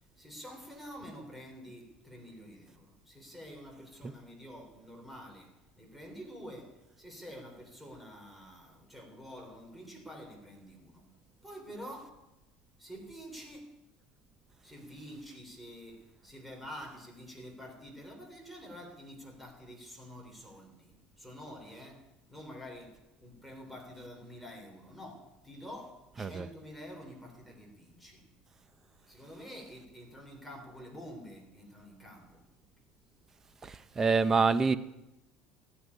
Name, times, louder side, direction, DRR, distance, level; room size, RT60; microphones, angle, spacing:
voice 1, 0.2-11.1 11.4-12.2 12.8-13.8 14.6-28.3 29.0-32.5, equal, ahead, 3.3 m, -48 dB
voice 2, 33.6-34.8, right 4 dB, 20° right, 0.6 m, -26 dB
14.0 x 9.8 x 9.8 m
cardioid pair, 160°, 2 cm